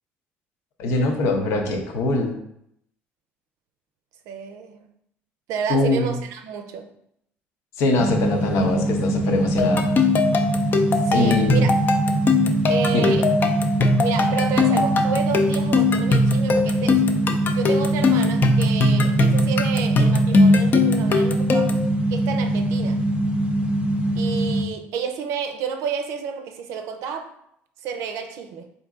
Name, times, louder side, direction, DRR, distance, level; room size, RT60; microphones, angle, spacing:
voice 1, 0.8-2.3 5.7-6.1 7.8-9.9 11.1-11.6 12.9-13.1, left 2 dB, 75° left, 3 dB, 0.8 m, -22 dB
voice 2, 4.3-4.8 5.5-6.9 11.0-11.7 12.7-13.3 14.0-21.8 22.1-23.0 24.2-27.3 27.8-28.7, right 7 dB, 75° right, 6 dB, 0.5 m, -30 dB
sound 1, 8.0-24.6, right 2 dB, 20° right, 0.5 m, -23 dB
sound 2, 9.6-21.9, left 3 dB, 40° left, 0.5 m, -20 dB
3.8 x 2.7 x 3.6 m, 0.74 s
supercardioid pair, 95°, 5 cm